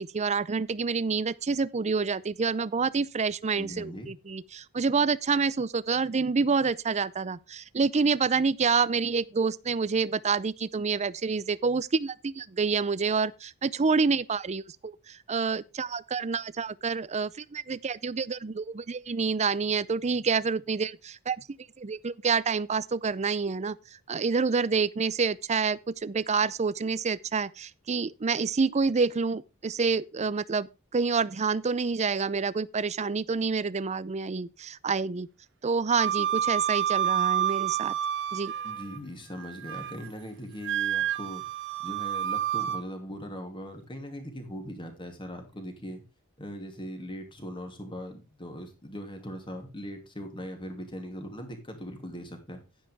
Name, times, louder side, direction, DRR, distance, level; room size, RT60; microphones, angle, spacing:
voice 1, 0.0-21.5 21.8-23.8 24.1-35.3 35.6-37.9 38.3-38.5, right 5 dB, 30° right, 0.5 m, -28 dB
voice 2, 3.5-4.1 38.6-41.4 41.8-46.0 46.4-52.6, equal, 25° left, 2.9 m, -40 dB
Wind instrument woodwind instrument, 36.0-39.0 39.4-40.1 40.6-42.8, right 10 dB, 55° right, 0.9 m, -29 dB
10.0 x 10.0 x 3.5 m
head